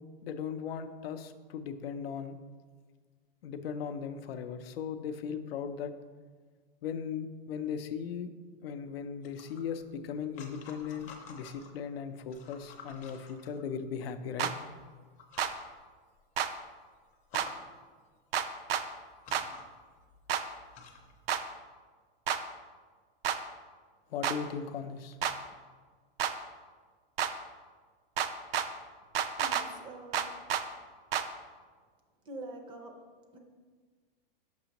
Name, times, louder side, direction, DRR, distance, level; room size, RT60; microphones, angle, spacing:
voice 1, 0.2-2.3 3.4-5.9 6.8-8.3 8.6-14.5 24.1-25.2, left 7 dB, 90° left, 9 dB, 0.6 m, -38 dB
sound 1, 9.2-11.8 12.2-14.1 14.8-14.9 15.2-15.7 16.2-16.3 16.6-16.7 17.1-17.6 18.6-18.7 19.1-21.2, left 4 dB, 25° left, 0.6 m, -51 dB
sound 2, 14.4-14.5 15.4-15.5 16.4-16.5 17.3-17.5 18.3-18.8 19.3-19.5 20.3-20.4 21.3-21.4 22.3-22.4 23.2-23.4 24.2-24.4 25.2-25.4 26.2-26.3 27.2-27.3 28.2-28.7 29.2-29.7 30.1-30.6 31.1-31.3, right 9 dB, 80° right, 0.5 m, -30 dB
voice 2, 29.4-30.3 32.2-33.0 33.3-33.4, right 2 dB, 15° right, 3 dB, 0.5 m, -45 dB
6.1 x 5.8 x 2.9 m, 1.5 s
supercardioid pair, 155°, 29 cm